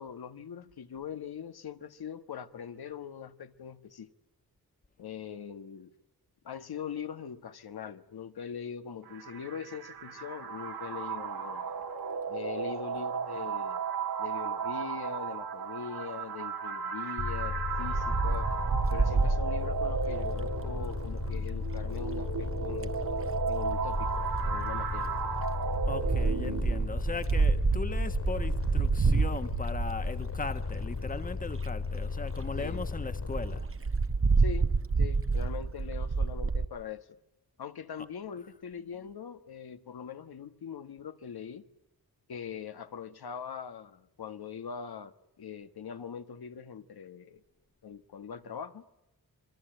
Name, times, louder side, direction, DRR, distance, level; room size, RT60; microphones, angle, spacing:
voice 1, 0.0-4.1 5.0-5.9 6.4-11.7 12.3-13.8 14.2-18.5 18.9-23.0 23.5-25.2 32.6-32.9 34.3-34.7 35.0-37.1 37.6-41.6 42.3-47.4 47.8-48.8, left 7 dB, 85° left, 1.6 m, -42 dB
sound 1, 9.0-27.0, right 6 dB, 75° right, 2.6 m, -35 dB
sound 2, 17.2-33.6, left 4 dB, 50° left, 2.7 m, -35 dB
Wind, 17.8-21.4 22.5-23.0 23.7-30.6 31.3-31.4 31.6-31.7 32.0-32.1 32.4-32.5 32.7-32.9 33.3-36.6, right 4 dB, 35° right, 1.2 m, -29 dB
voice 2, 25.9-33.7 38.0-38.1, left 3 dB, 20° left, 1.4 m, -38 dB
27.0 x 22.5 x 9.1 m
wide cardioid pair, 140°, 37 cm